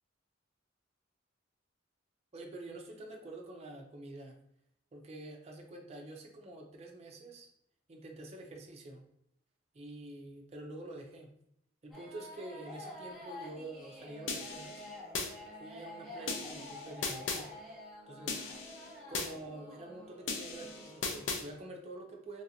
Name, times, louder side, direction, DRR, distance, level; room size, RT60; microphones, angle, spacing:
voice 1, 2.3-4.4 4.9-7.5 7.9-9.0 9.7-11.3 11.8-14.9 15.6-17.5 18.1-18.4 19.1-22.4, right 2 dB, 35° right, 1 dB, 0.5 m, -47 dB
sound 1, 11.9-21.3, left 1 dB, ahead, 0.8 m, -49 dB
sound 2, 14.3-15.3 16.3-17.4 18.3-19.3 20.3-21.4, left 4 dB, 80° left, 0.5 m, -37 dB
3.2 x 2.5 x 2.7 m, 0.74 s
head